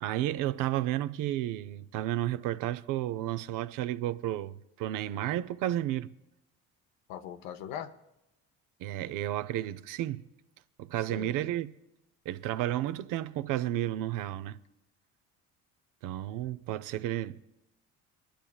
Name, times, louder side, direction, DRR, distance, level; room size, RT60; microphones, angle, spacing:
voice 1, 0.0-6.1 8.8-10.3 10.8-11.8 12.3-14.6 16.0-17.4, right 13 dB, 70° right, 0.6 m, -32 dB
voice 2, 7.1-8.0 11.1-11.5, left 9 dB, 80° left, 0.9 m, -40 dB
24.5 x 11.5 x 2.3 m
supercardioid pair, 70°, 33 cm